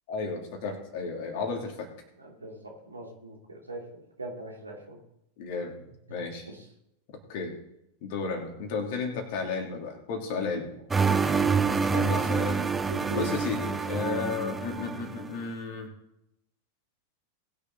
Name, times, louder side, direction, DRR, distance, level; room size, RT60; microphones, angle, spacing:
voice 1, 0.1-1.9 5.4-5.8 6.1-6.5 7.3-7.5 8.0-10.8 11.9-12.7 13.1-15.9, left 4 dB, 50° left, 2 dB, 2.9 m, -33 dB
voice 2, 2.2-3.8 4.2-5.0 6.5-6.6 10.3-10.4 11.1-11.4 12.9-13.3, right 1 dB, 80° right, 0 dB, 2.7 m, -40 dB
sound 1, 10.9-15.3, right 5 dB, 15° right, 0.7 m, -27 dB
20.0 x 6.9 x 4.1 m, 0.82 s
figure-of-eight pair, 90°, 0 cm